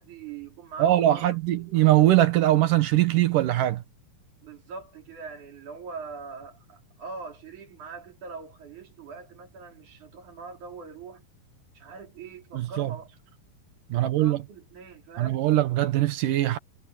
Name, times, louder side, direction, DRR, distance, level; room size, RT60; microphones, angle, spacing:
voice 1, 0.0-1.4 4.4-11.2 11.7-13.1 13.9-15.5, right 5 dB, 50° right, 4.7 m, -42 dB
voice 2, 0.8-3.8 12.5-12.9 13.9-14.4 15.2-16.6, right 14 dB, 65° right, 2.4 m, -21 dB
omnidirectional pair, 4.5 m